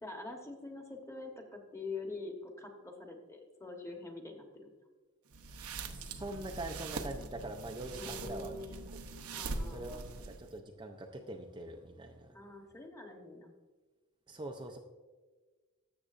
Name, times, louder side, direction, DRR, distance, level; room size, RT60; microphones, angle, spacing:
voice 1, 0.0-4.7 8.0-8.9 9.3-10.0 12.3-13.5, left 3 dB, 15° left, 3 dB, 1.0 m, -45 dB
sound 1, 5.3-10.6, right 3 dB, 85° right, 0.8 m, -42 dB
voice 2, 5.9-8.6 8.9-9.0 9.7-12.3 14.3-14.8, right 2 dB, 20° right, 3 dB, 0.4 m, -43 dB
13.0 x 7.5 x 2.5 m, 1.3 s
head